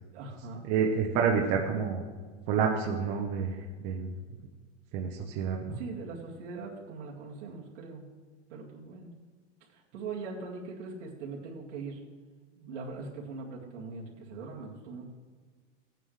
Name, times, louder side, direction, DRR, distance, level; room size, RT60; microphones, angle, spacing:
voice 1, 0.1-0.7 5.7-8.0 8.5-9.1 9.7-12.0 12.6-15.1, right 4 dB, 80° right, -4 dB, 2.4 m, -41 dB
voice 2, 0.6-2.0 2.5-3.6 3.8-4.1 4.9-5.8, right 6 dB, 30° right, 1 dB, 0.8 m, -28 dB
14.5 x 9.2 x 3.3 m, 1.5 s
supercardioid pair, 165°, 35 cm